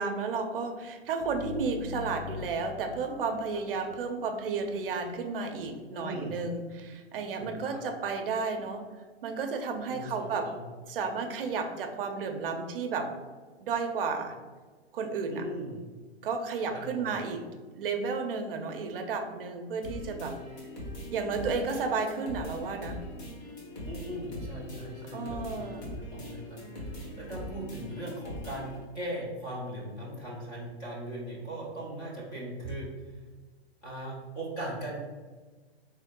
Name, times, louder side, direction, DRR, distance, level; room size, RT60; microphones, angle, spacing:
voice 1, 0.0-8.9 9.2-10.5 10.9-13.1 13.6-14.4 14.9-15.4 16.2-17.4 17.8-20.4 21.1-23.0 25.1-26.0, right 4 dB, 55° right, 6 dB, 0.6 m, -32 dB
sound 1, 1.2-4.8, left 4 dB, 85° left, 0.5 m, -43 dB
voice 2, 5.9-6.4 7.4-7.8 9.9-10.6 15.3-15.8 16.7-17.2 23.8-33.2 33.8-35.0, right 1 dB, 10° left, -5 dB, 0.5 m, -39 dB
sound 2, 19.8-28.8, left 1 dB, 40° left, 1.4 m, -41 dB
3.7 x 3.1 x 3.6 m, 1.4 s
hypercardioid pair, 160°, 33 cm